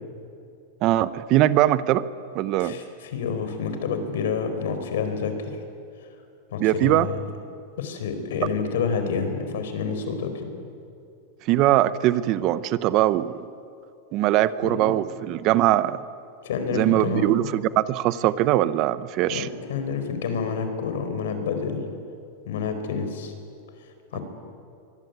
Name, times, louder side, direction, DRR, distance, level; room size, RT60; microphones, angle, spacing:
voice 1, 0.8-2.0 2.3-2.8 6.6-7.1 11.5-13.5 14.1-16.0 16.7-19.5, right 14 dB, 40° right, 15 dB, 0.9 m, -21 dB
voice 2, 2.6-5.5 6.5-7.1 7.8-10.5 14.6-14.9 16.4-17.5 19.3-21.8 22.4-23.3 24.1-24.2, left 5 dB, 80° left, 8 dB, 4.5 m, -28 dB
24.5 x 20.0 x 9.5 m, 2.5 s
supercardioid pair, 150°, 0 cm